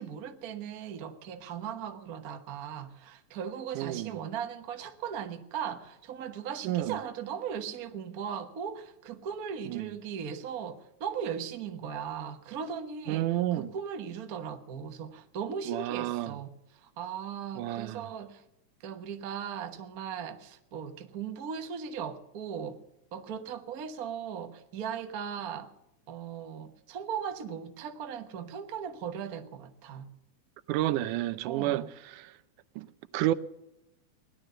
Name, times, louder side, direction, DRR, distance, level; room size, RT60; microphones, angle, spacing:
voice 1, 0.0-18.4 18.8-22.8 23.1-25.7 26.1-30.1 31.4-31.9, right 7 dB, 55° right, 1.0 m, -38 dB
voice 2, 3.8-4.2 6.6-7.0 9.7-10.0 13.1-13.7 15.7-16.4 17.6-18.1 30.7-31.9 32.1-32.3 32.8-32.9 33.1-33.3, right 14 dB, 90° right, 2.2 m, -30 dB
18.5 x 11.5 x 6.7 m
omnidirectional pair, 3.5 m